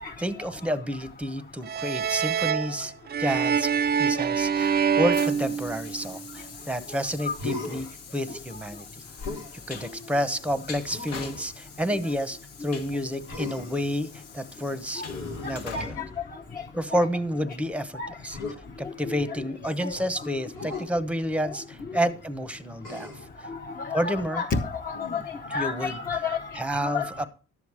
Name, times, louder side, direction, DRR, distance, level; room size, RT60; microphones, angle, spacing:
voice 1, 0.2-2.9 3.2-3.7 4.0-7.9 8.1-8.9 9.5-15.0 15.4-16.0 16.7-18.4 18.8-23.1 23.9-24.4 25.5-26.0 26.5-27.3, equal, 5° right, 13 dB, 0.9 m, -30 dB
sound 1, 1.6-6.3, right 7 dB, 35° right, 0.4 m, -25 dB
Train, 4.0-17.1, left 5 dB, 55° left, 1.3 m, -44 dB
Human voice, 7.3-8.0 9.2-9.5 10.9-11.5 13.3-13.9 15.0-16.3 18.3-18.6 20.5-20.9 22.8-23.3 24.9-25.5, left 3 dB, 90° left, 1.9 m, -37 dB
voice 2, 23.8-25.2 25.5-26.4 26.8-27.1, left 5 dB, 30° left, 0 dB, 0.9 m, -30 dB
11.5 x 7.1 x 4.8 m, 0.38 s
cardioid pair, 90°, 30 cm